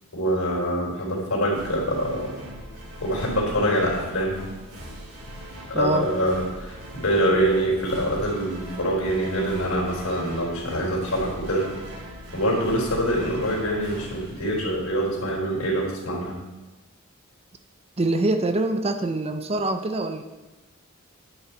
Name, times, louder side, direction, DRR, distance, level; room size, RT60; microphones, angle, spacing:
voice 1, 0.1-2.3 3.0-4.3 5.7-11.7 12.3-16.4, equal, 70° left, -3 dB, 3.9 m, -25 dB
sound 1, 1.5-15.2, equal, 75° right, 2.9 m, -40 dB
voice 2, 5.7-6.1 18.0-20.2, right 2 dB, 30° right, 8 dB, 0.6 m, -24 dB
9.8 x 8.5 x 4.5 m, 1.1 s
head